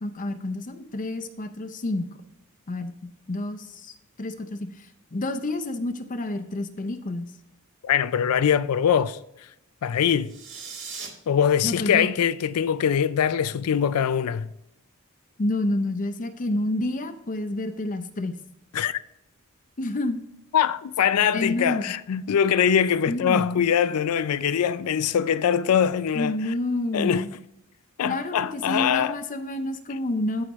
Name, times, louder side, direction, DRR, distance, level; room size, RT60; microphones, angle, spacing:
voice 1, 0.0-2.1 2.7-2.9 3.3-7.3 11.6-12.1 15.4-18.4 19.8-20.2 21.3-21.9 23.1-23.6 26.1-27.3 28.0-30.4, left 2 dB, 35° left, 0.6 m, -29 dB
voice 2, 7.8-9.2 9.8-10.3 11.3-14.5 18.7-19.0 20.5-26.5 26.9-27.3 28.0-29.2, left 8 dB, 90° left, 0.4 m, -23 dB
sound 1, 10.2-11.1, right 5 dB, 55° right, 1.8 m, -38 dB
14.0 x 4.8 x 3.1 m
head